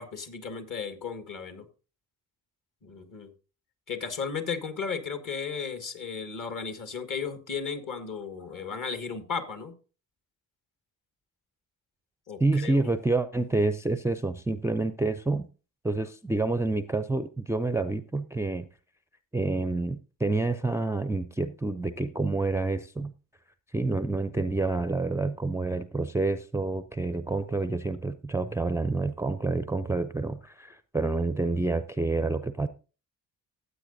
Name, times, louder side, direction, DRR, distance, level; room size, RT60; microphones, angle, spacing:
voice 1, 0.0-1.7 2.8-3.3 3.9-9.7 12.3-12.8, left 5 dB, 45° left, 1.7 m, -35 dB
voice 2, 12.4-15.5 15.8-18.7 19.3-23.1 23.7-32.7, right 3 dB, 5° right, 0.4 m, -28 dB
14.5 x 8.1 x 2.6 m
hypercardioid pair, 40°, 44 cm